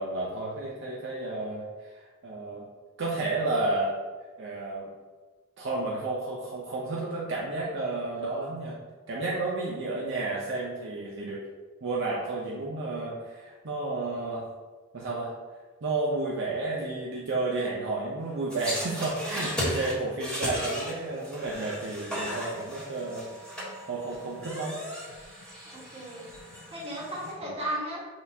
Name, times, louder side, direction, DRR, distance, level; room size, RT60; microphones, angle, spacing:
voice 1, 0.0-1.6 2.2-2.6 3.0-4.0 4.4-4.9 5.6-8.8 9.1-11.4 11.8-14.4 14.9-15.3 15.8-23.3 23.9-24.8, right 2 dB, 60° right, -4 dB, 0.6 m, -31 dB
sound 1, 18.5-27.3, equal, 5° left, 1.3 m, -36 dB
voice 2, 25.7-26.3 26.7-28.1, right 1 dB, 30° right, -8 dB, 1.4 m, -35 dB
6.2 x 2.4 x 2.7 m, 1.3 s
head